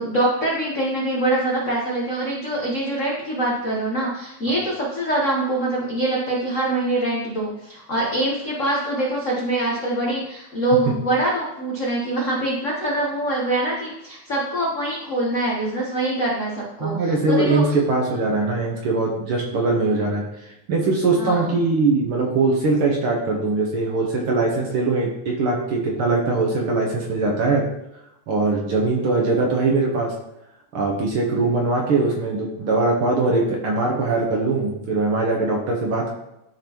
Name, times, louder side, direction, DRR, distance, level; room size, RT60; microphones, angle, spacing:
voice 1, 0.0-17.6 21.2-21.5, right 1 dB, 85° left, -4 dB, 0.6 m, -24 dB
voice 2, 16.8-20.2 20.7-27.6 28.3-30.1 30.7-36.1, right 3 dB, 65° right, -1 dB, 1.5 m, -21 dB
12.0 x 3.9 x 3.0 m, 0.87 s
omnidirectional pair, 3.3 m